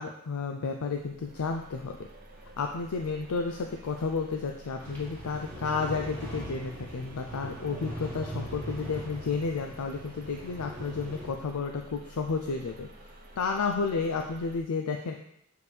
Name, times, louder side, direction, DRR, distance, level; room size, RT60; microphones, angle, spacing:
voice 1, 0.0-2.0 2.6-12.9 13.4-15.2, left 4 dB, 85° left, 4 dB, 0.5 m, -32 dB
sound 1, 0.9-14.6, right 1 dB, 40° right, 0.7 m, -51 dB
sound 2, 4.8-11.3, right 1 dB, 10° left, 1.6 m, -41 dB
6.9 x 4.5 x 3.3 m, 0.72 s
head